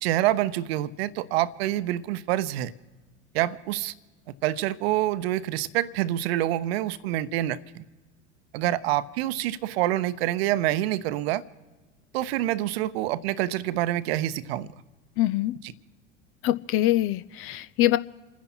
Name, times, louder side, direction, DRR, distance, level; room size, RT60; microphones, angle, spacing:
voice 1, 0.0-2.7 3.3-3.9 4.4-7.6 8.5-11.4 12.1-14.7 15.6-15.7, right 14 dB, 55° right, 15 dB, 0.8 m, -26 dB
voice 2, 15.2-15.6 16.4-18.0, left 14 dB, 35° left, 16 dB, 0.5 m, -24 dB
29.0 x 10.0 x 4.4 m, 1.2 s
figure-of-eight pair, 75°, 37 cm